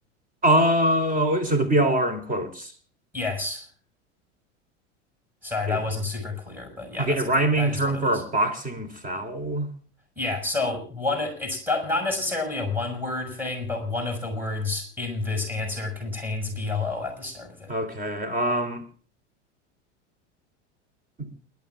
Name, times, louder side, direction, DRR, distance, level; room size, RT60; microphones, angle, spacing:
voice 1, 0.4-2.7 5.7-5.8 7.0-9.7 17.7-18.8 21.2-21.3, right 1 dB, 20° right, 3.4 m, -23 dB
voice 2, 3.1-3.7 5.4-7.2 7.6-8.1 10.2-17.7, left 3 dB, 5° right, 6.2 m, -29 dB
29.0 x 12.5 x 2.4 m
hypercardioid pair, 95°, 37 cm